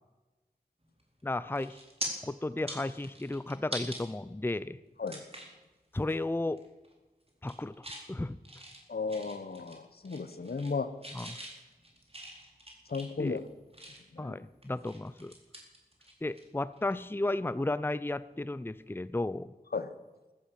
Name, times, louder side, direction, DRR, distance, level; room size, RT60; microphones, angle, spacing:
sound 1, 1.0-1.2 1.6-2.1 2.5-4.0 4.5-4.6 5.1-5.6 6.0-6.2 6.5-6.9 7.3-8.1 8.4-9.8 10.0-10.8 11.0-14.2 14.6-16.4 16.7-16.9 18.8-19.0, right 1 dB, 40° right, 4.2 m, -43 dB
voice 1, 1.2-1.8 2.2-4.8 5.9-6.6 7.4-8.4 11.1-11.3 13.2-13.4 14.2-15.3 16.2-19.5, left 2 dB, 15° left, 15 dB, 0.6 m, -34 dB
voice 2, 8.9-10.9 12.9-13.5 14.1-14.3 19.7-20.0, left 4 dB, 80° left, 11 dB, 1.1 m, -35 dB
14.5 x 11.5 x 7.5 m, 1.1 s
wide cardioid pair, 40°, 16 cm